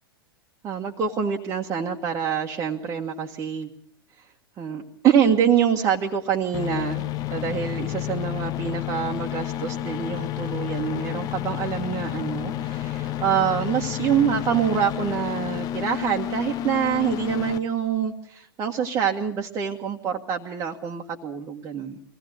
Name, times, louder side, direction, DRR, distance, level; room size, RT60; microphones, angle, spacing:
voice 1, 0.6-3.7 4.6-22.0, right 8 dB, 25° right, -1 dB, 1.5 m, -25 dB
sound 1, 6.5-17.6, left 12 dB, 30° left, 0.9 m, -30 dB
23.0 x 17.0 x 8.1 m, 0.63 s
figure-of-eight pair, 95°, 12 cm